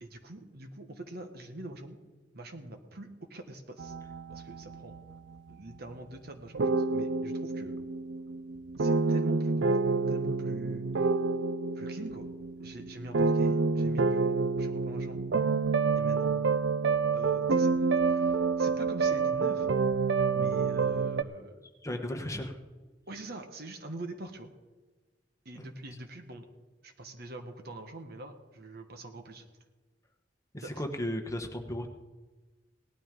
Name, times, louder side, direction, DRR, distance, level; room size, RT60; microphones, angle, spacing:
voice 1, 0.0-2.0 2.3-3.9 4.3-5.0 5.5-7.7 8.8-9.7 10.1-10.8 11.7-12.3 12.6-15.3 16.0-16.3 17.1-19.7 20.3-21.7 23.1-24.5 25.4-26.5 26.8-29.4 30.6-30.8, right 2 dB, 60° right, 5 dB, 1.4 m, -44 dB
sound 1, 3.8-5.3 6.5-21.2, right 4 dB, 90° right, 0.5 m, -28 dB
voice 2, 21.8-22.5 25.6-25.7 30.5-31.9, left 1 dB, 20° left, 4 dB, 1.2 m, -35 dB
18.0 x 12.5 x 3.8 m, 1.2 s
head